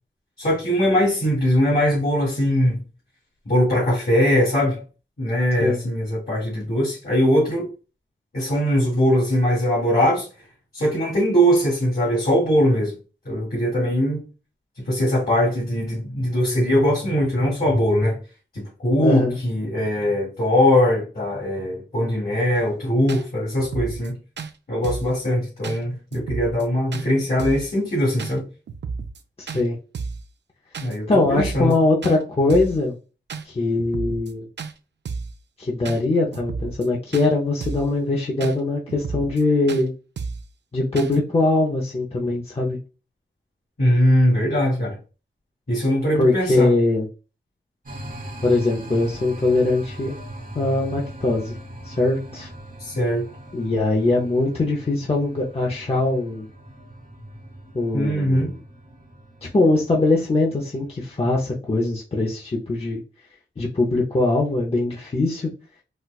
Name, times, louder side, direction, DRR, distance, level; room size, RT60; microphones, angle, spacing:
voice 1, 0.4-2.8 3.4-4.8 5.2-7.7 8.3-10.3 10.7-12.9 13.2-14.2 14.9-18.2 18.5-24.2 24.7-28.4 30.8-31.7 43.8-45.0 45.7-46.7 52.8-53.3 57.9-58.5, equal, 50° left, 1.5 m, -21 dB
voice 2, 19.0-19.4 29.4-29.8 31.1-32.9 33.4-34.5 35.6-39.9 40.7-42.8 46.2-47.1 48.4-50.1 50.5-51.6 51.8-52.5 53.5-56.5 57.7-58.6 59.5-63.0 63.6-65.5, left 2 dB, 30° left, 0.6 m, -21 dB
sound 1, 22.5-22.6 23.1-23.2 23.6-24.1 24.4-24.5 24.8-25.1 25.6-25.8 26.1-26.6 26.9-27.1 27.4-27.7 28.2-28.3 28.7-29.2 29.5-29.6 29.9-30.3 30.7-31.0 31.2-31.8 32.0-32.2 32.5-32.8 33.3-33.4 33.8-34.3 34.6-34.7 35.0-35.4 35.8-36.0 36.3-36.9 37.1-37.3 37.6-37.9 38.4-38.5 38.9-39.4 39.7-39.8 40.2-40.5 41.0-41.2, right 5 dB, 65° right, 0.4 m, -32 dB
sound 2, 47.9-61.1, right 1 dB, 45° right, 1.0 m, -40 dB
4.2 x 2.2 x 2.3 m
wide cardioid pair, 100°, 20 cm